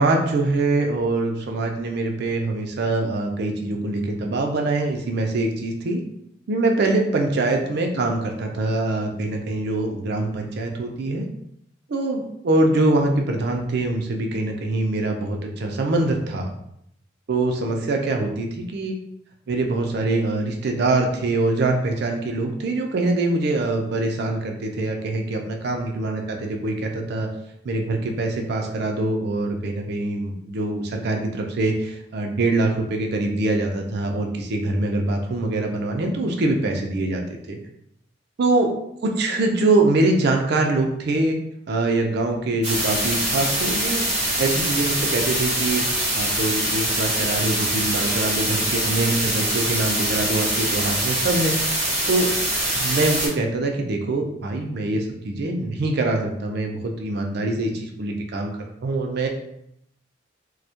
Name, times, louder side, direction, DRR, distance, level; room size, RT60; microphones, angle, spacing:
voice 1, 0.0-6.0 6.5-11.3 11.9-16.5 17.3-19.0 19.5-27.3 27.6-37.2 37.5-37.6 38.4-38.7 39.2-41.4 41.7-44.1 44.4-45.8 46.1-51.6 52.1-52.3 52.7-59.3, right 2 dB, 60° right, 2 dB, 0.4 m, -24 dB
sound 1, 42.6-53.3, right 1 dB, 35° right, 0.8 m, -24 dB
2.2 x 2.1 x 2.7 m, 0.75 s
head